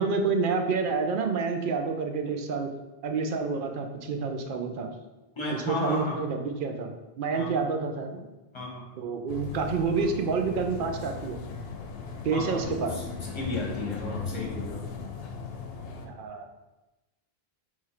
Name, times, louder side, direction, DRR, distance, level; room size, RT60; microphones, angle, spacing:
voice 1, 0.0-2.7 3.0-4.9 5.5-8.2 9.0-11.4 12.2-12.9 16.0-16.5, right 4 dB, 65° right, 4 dB, 0.7 m, -28 dB
voice 2, 5.3-6.2 7.3-7.6 8.5-8.8 12.3-14.9, left 2 dB, 30° left, -1 dB, 0.9 m, -34 dB
sound 1, 9.3-16.1, left 5 dB, 70° left, 0.8 m, -38 dB
3.6 x 3.2 x 4.3 m, 1.1 s
omnidirectional pair, 1.0 m